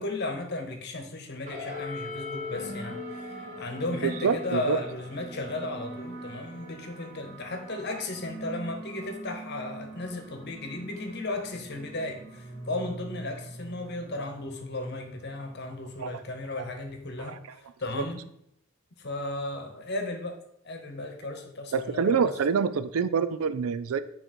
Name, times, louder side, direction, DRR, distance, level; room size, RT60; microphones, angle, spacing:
voice 1, 0.0-18.2 19.0-20.4 20.6-22.3, left 2 dB, 50° left, 5 dB, 1.0 m, -35 dB
sound 1, 1.5-16.2, equal, 35° right, 1.6 m, -42 dB
voice 2, 4.0-4.8 16.0-16.1 17.2-17.6 18.0-18.1 21.7-24.0, right 6 dB, 90° right, 13 dB, 0.4 m, -26 dB
9.0 x 3.2 x 4.3 m, 0.75 s
head